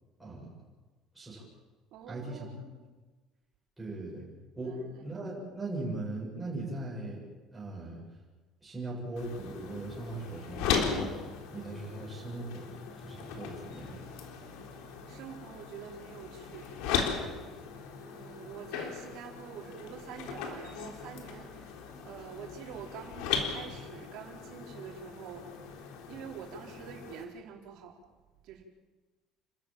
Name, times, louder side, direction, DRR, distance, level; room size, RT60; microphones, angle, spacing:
voice 1, 0.2-0.5 1.1-1.4 2.1-2.5 3.8-4.3 4.6-7.2 7.5-8.0 8.6-11.2 11.5-12.8 13.0-14.0, right 2 dB, 5° right, -6 dB, 7.8 m, -39 dB
voice 2, 1.9-2.9 4.5-5.0 15.1-17.3 18.0-25.5 26.1-28.0 28.4-28.6, right 7 dB, 60° right, 1 dB, 4.6 m, -46 dB
sound 1, 9.2-27.2, left 6 dB, 85° left, 3.7 m, -38 dB
29.5 x 13.5 x 9.1 m, 1.3 s
cardioid pair, 165°, 0 cm